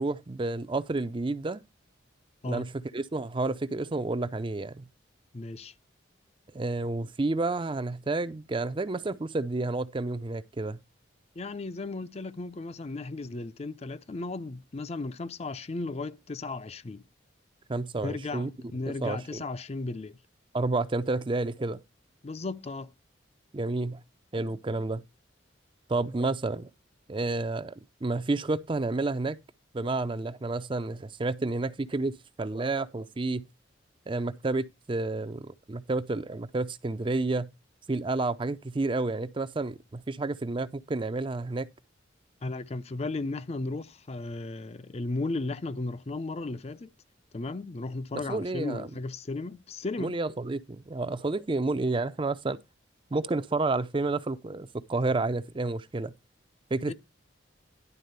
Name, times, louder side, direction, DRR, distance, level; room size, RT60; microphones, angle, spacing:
voice 1, 0.0-1.6 2.5-4.9 6.5-10.8 17.7-18.5 19.0-19.4 20.5-21.8 23.5-24.0 24.3-25.0 25.9-26.7 27.1-27.7 28.0-29.4 29.7-33.4 34.1-37.5 37.9-41.7 48.3-48.9 50.0-52.6 53.1-56.1 56.7-56.9, right 2 dB, 25° right, 0.5 m, -30 dB
voice 2, 5.3-5.7 11.4-17.0 18.0-20.2 22.2-22.9 42.4-46.9 47.3-50.2 56.9-57.0, left 3 dB, 35° left, 0.5 m, -35 dB
11.0 x 4.0 x 6.6 m
head